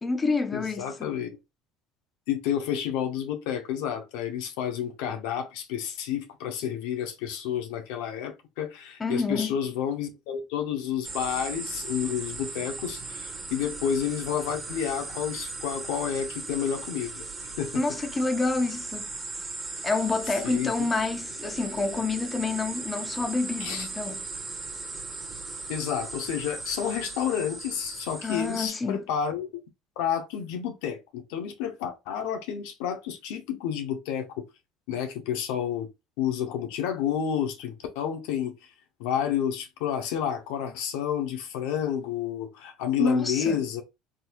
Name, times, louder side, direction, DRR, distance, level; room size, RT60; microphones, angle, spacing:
voice 1, 0.0-1.1 9.0-9.6 17.7-19.1 19.8-24.2 28.2-29.0 43.0-43.6, left 3 dB, 20° left, 0.6 m, -28 dB
voice 2, 0.5-1.3 2.3-17.3 17.6-17.7 20.3-20.7 23.6-23.9 25.7-29.5 30.0-34.4 34.9-35.9 36.2-38.7 39.0-43.8, left 9 dB, 80° left, 0.7 m, -30 dB
sound 1, 11.0-28.7, right 3 dB, 25° right, 1.4 m, -38 dB
3.6 x 2.9 x 2.2 m
supercardioid pair, 95°, 0 cm